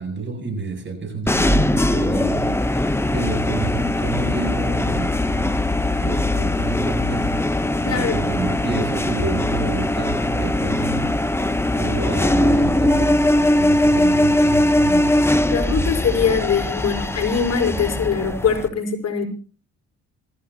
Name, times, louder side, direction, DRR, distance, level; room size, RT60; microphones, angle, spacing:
voice 1, 0.0-7.4 7.8-11.1 11.7-15.2, right 3 dB, 40° right, 4 dB, 7.8 m, -29 dB
sound 1, 1.3-18.7, left 1 dB, 10° left, 0.9 m, -20 dB
voice 2, 7.8-8.2 15.5-19.2, left 6 dB, 55° left, 3 dB, 4.9 m, -22 dB
26.5 x 15.0 x 2.9 m, 0.38 s
cardioid pair, 90°, 30 cm